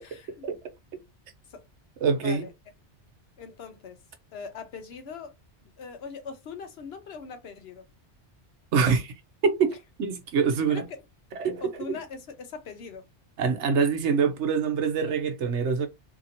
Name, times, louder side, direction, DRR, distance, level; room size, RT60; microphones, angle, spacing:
voice 1, 0.0-0.5 1.5-1.6 2.1-2.5 3.4-4.0 4.3-5.3 5.8-7.9 10.7-11.0 11.6-13.0, left 5 dB, 65° left, 0.9 m, -41 dB
voice 2, 2.0-2.5 8.7-9.1 9.4-10.8 11.4-11.6 13.4-15.9, right 5 dB, 75° right, 1.0 m, -25 dB
2.8 x 2.7 x 2.7 m
omnidirectional pair, 1.2 m